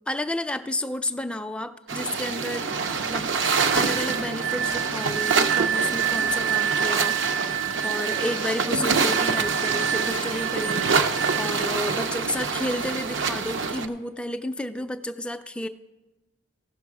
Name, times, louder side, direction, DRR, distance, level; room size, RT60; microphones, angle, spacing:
voice 1, 0.1-2.7 3.0-7.2 7.8-15.7, left 1 dB, 5° left, 7 dB, 0.3 m, -31 dB
sound 1, 1.9-13.9, right 5 dB, 70° right, 0.6 m, -26 dB
sound 2, 3.6-11.6, right 9 dB, 85° right, 1.4 m, -29 dB
15.0 x 6.1 x 4.7 m, 1.1 s
head